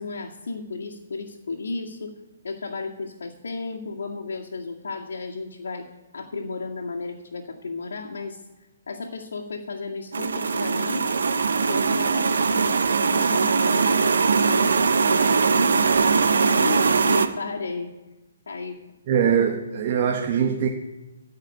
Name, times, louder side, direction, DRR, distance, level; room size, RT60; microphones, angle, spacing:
voice 1, 0.0-2.1 2.4-5.9 6.1-8.4 8.9-11.2 11.7-12.7 13.1-17.9 18.5-18.8, left 3 dB, 80° left, -3 dB, 2.1 m, -34 dB
sound 1, 10.1-17.3, right 5 dB, 80° right, 1.0 m, -21 dB
voice 2, 19.1-20.7, right 8 dB, 30° right, 2 dB, 1.1 m, -22 dB
14.5 x 5.7 x 9.1 m, 1.1 s
hypercardioid pair, 165°, 0 cm